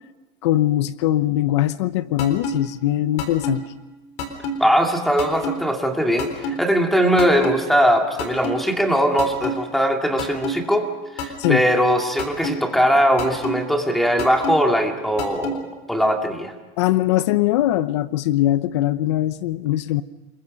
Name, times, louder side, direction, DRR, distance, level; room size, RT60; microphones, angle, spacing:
voice 1, 0.4-3.6 11.4-11.6 16.8-20.0, left 14 dB, 75° left, 15 dB, 0.8 m, -21 dB
sound 1, 2.2-2.5 3.2-3.5 4.2-4.5 5.2-5.5 6.2-6.5 7.2-7.5 8.2-8.5 9.2-9.5 10.2-10.5 11.2-11.5 12.2-12.5 13.2-13.5 14.2-14.5 15.2-15.5, left 2 dB, 55° left, 4.1 m, -26 dB
voice 2, 4.6-10.9 11.2-16.5, equal, ahead, 3 dB, 2.2 m, -20 dB
29.0 x 21.5 x 5.3 m, 1.1 s
supercardioid pair, 155°, 15 cm